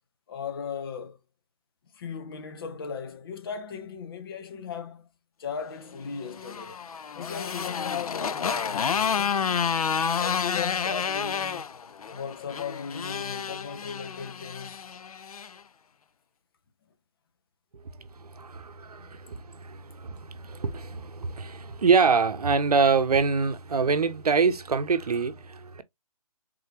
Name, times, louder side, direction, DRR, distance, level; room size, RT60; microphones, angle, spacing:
voice 1, 0.3-1.2 1.9-5.1 5.4-6.8 7.1-9.7 10.2-11.7 12.1-14.8 15.1-15.3 19.0-19.1, left 6 dB, 40° left, 0.7 m, -37 dB
Motorcycle, 6.1-15.5, left 7 dB, 75° left, 0.5 m, -30 dB
voice 2, 18.2-25.8, right 5 dB, 90° right, 0.7 m, -25 dB
3.7 x 3.3 x 2.9 m
hypercardioid pair, 155°, 19 cm